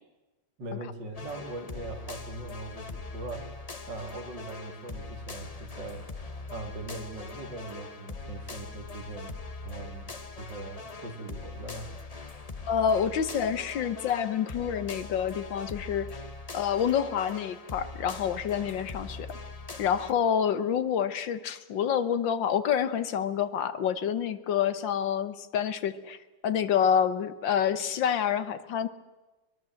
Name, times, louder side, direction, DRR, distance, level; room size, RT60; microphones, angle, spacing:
voice 1, 0.6-3.5 3.9-6.1 6.5-11.9, right 2 dB, 65° right, 4 dB, 3.7 m, -40 dB
sound 1, 1.1-20.1, left 3 dB, 25° left, 1.0 m, -42 dB
voice 2, 12.7-16.2 16.5-19.3 19.8-26.2 26.4-28.9, left 8 dB, 75° left, 13 dB, 1.7 m, -27 dB
22.5 x 22.0 x 7.7 m, 1.2 s
omnidirectional pair, 2.1 m